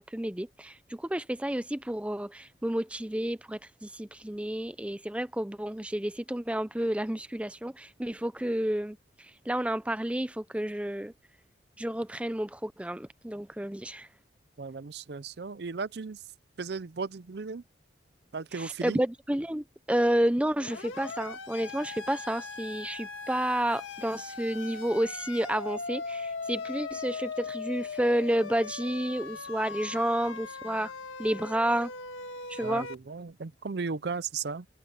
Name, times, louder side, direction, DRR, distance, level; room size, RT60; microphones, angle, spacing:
voice 1, 0.0-11.1 11.8-14.1 18.5-30.9 31.2-31.9 32.5-32.9, right 1 dB, 5° right, 0.5 m, -30 dB
voice 2, 14.6-16.2 16.6-17.6 18.3-19.0 32.6-34.7, right 4 dB, 55° right, 0.5 m, -35 dB
Siren, 20.6-32.9, left 4 dB, 85° left, 2.0 m, -39 dB
head